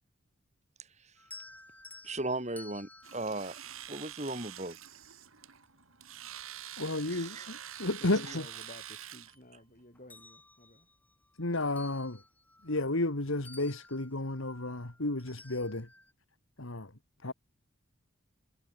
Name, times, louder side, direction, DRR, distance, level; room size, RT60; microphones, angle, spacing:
sound 1, 1.2-4.5 6.2-6.3 6.8-8.0 8.3-9.6 10.0-13.2 13.4-16.1, left 2 dB, 10° left, 7.6 m, -55 dB
voice 1, 2.0-3.6 3.9-4.8 7.1-7.5, right 2 dB, 30° right, 3.7 m, -36 dB
Domestic sounds home sounds, 3.0-9.3, right 11 dB, 75° right, 3.8 m, -46 dB
voice 2, 6.8-7.4 7.8-8.5 11.4-12.2 12.6-15.9 16.6-16.9 17.2-17.3, left 2 dB, 70° left, 2.1 m, -32 dB
voice 3, 8.0-10.9, left 1 dB, 40° left, 5.1 m, -52 dB
head